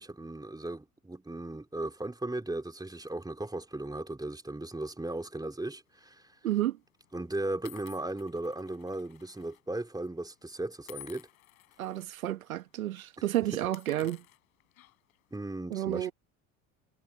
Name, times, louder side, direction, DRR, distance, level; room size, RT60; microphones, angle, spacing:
voice 1, 0.0-6.3 7.1-11.3 15.3-16.1, right 2 dB, 10° right, 3.4 m, -37 dB
sound 1, 6.0-6.3 7.0-7.1 7.7-9.6 9.9-10.1 10.9-12.0 12.5-12.6 12.9-13.1 13.6-15.2, left 16 dB, 80° left, 7.5 m, -53 dB
voice 2, 6.4-6.8 11.8-14.2 15.7-16.1, right 13 dB, 85° right, 1.4 m, -31 dB
hypercardioid pair, 65°, 41 cm